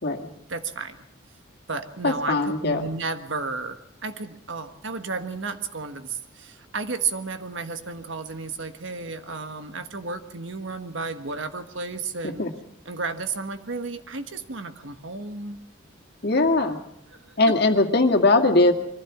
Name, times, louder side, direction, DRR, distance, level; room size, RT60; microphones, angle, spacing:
voice 1, 0.5-1.1 1.7-12.5 12.8-15.6 17.1-17.5, right 4 dB, 70° right, 8 dB, 1.5 m, -33 dB
voice 2, 2.0-2.8 12.2-12.5 16.2-16.8 17.4-18.7, left 2 dB, 55° left, 4 dB, 2.1 m, -20 dB
23.5 x 15.5 x 7.3 m, 0.78 s
head